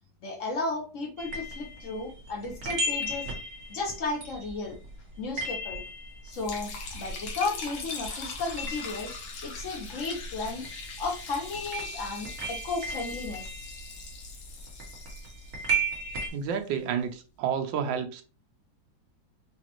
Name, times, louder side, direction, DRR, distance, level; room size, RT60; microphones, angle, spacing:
voice 1, 0.2-3.3 3.7-4.8 5.2-5.8 6.2-9.1 9.4-10.6 11.0-13.5, left 3 dB, 50° left, 1.0 m, -34 dB
sound 1, 1.2-7.8 8.0-16.3, right 2 dB, 45° right, 1.3 m, -36 dB
Liquid, 6.3-16.5, left 4 dB, 80° left, 1.7 m, -42 dB
voice 2, 16.3-18.2, right 7 dB, 70° right, 1.3 m, -30 dB
5.0 x 2.4 x 2.9 m
omnidirectional pair, 2.2 m